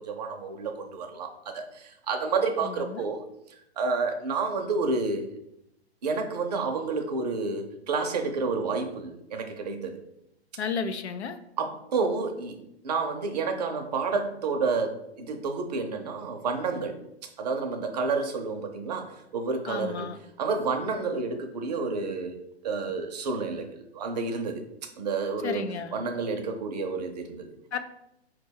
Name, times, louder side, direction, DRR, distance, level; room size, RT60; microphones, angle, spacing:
voice 1, 0.0-3.2 3.8-5.3 6.0-10.0 11.6-12.6 12.8-17.0 17.4-20.1 20.4-27.5, right 4 dB, 40° right, 4 dB, 0.6 m, -30 dB
voice 2, 2.6-3.0 10.6-11.4 19.7-20.2 25.4-26.0 27.7-27.8, left 6 dB, 80° left, 9 dB, 0.6 m, -33 dB
4.6 x 2.3 x 4.5 m, 0.81 s
hypercardioid pair, 160°, 32 cm